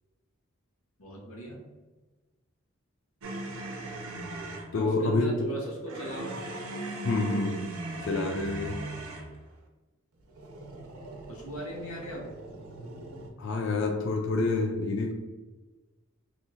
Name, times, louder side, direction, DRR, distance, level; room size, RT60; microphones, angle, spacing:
voice 1, 1.0-1.6 4.7-6.4 11.3-12.3, right 1 dB, 85° left, 1.0 m, -38 dB
sound 1, 3.2-4.7 5.9-9.4 10.3-13.3, right 2 dB, 80° right, 0.6 m, -39 dB
voice 2, 4.7-5.6 7.0-7.8 8.1-8.9 13.4-15.1, left 3 dB, 55° left, 0.3 m, -28 dB
2.7 x 2.4 x 4.1 m
head